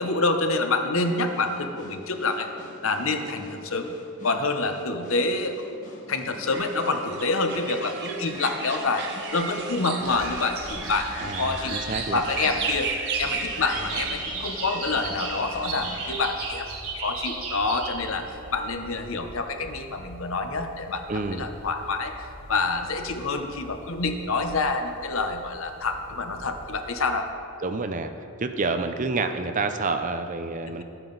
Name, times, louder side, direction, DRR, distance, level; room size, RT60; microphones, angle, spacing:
voice 1, 0.0-2.5 2.8-3.9 4.2-5.8 6.1-11.8 12.1-12.9 13.2-16.7 17.0-18.3 18.5-21.0 21.3-27.3, left 3 dB, 65° left, 6 dB, 0.9 m, -27 dB
sound 1, 0.9-16.1, left 1 dB, 35° left, 1.8 m, -45 dB
sound 2, 6.5-14.2, right 5 dB, 50° right, 0.9 m, -34 dB
sound 3, 10.0-27.0, right 3 dB, 70° right, 1.5 m, -38 dB
voice 2, 11.2-12.2 21.1-21.5 27.6-30.8, right 3 dB, 35° right, 8 dB, 0.5 m, -29 dB
12.5 x 9.0 x 4.0 m, 2.6 s
head